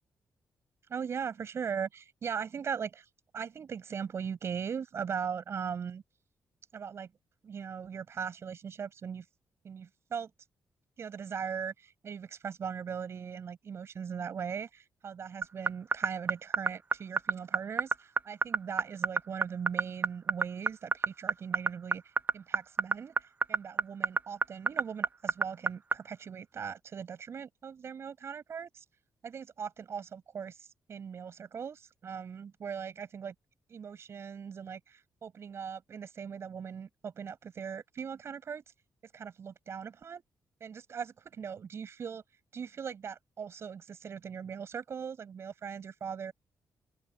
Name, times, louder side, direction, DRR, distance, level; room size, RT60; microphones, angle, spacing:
voice 1, 0.9-3.1 3.3-6.0 6.7-7.1 7.4-9.3 9.6-10.3 11.0-22.0 22.3-28.8 29.2-33.3 33.7-38.6 39.1-40.2 40.6-42.2 42.5-46.3, right 7 dB, 50° right, 7.7 m, -39 dB
sound 1, 15.4-25.9, right 4 dB, 30° right, 1.3 m, -26 dB
open air
cardioid pair, 120°, 6 cm